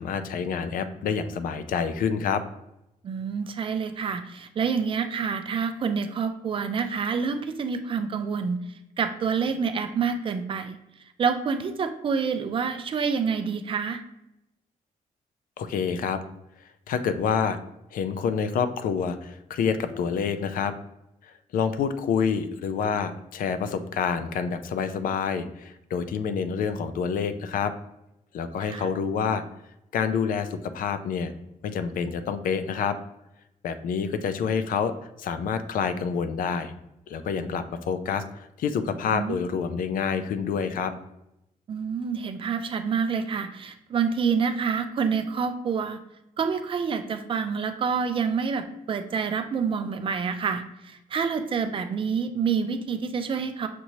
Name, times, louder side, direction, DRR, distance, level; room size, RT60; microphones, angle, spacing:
voice 1, 0.0-2.4 15.6-16.2 16.9-17.6 17.9-20.7 21.5-27.7 28.3-29.4 29.9-31.3 31.6-33.0 33.6-34.9 35.2-36.7 37.1-40.9, left 6 dB, 75° left, 11 dB, 0.4 m, -27 dB
voice 2, 3.0-8.7 9.0-10.8 11.2-14.0 28.6-28.9 39.1-39.4 41.7-46.0 46.4-53.7, right 6 dB, 35° right, 8 dB, 0.4 m, -27 dB
5.9 x 2.7 x 3.0 m, 0.86 s
wide cardioid pair, 175°, 15 cm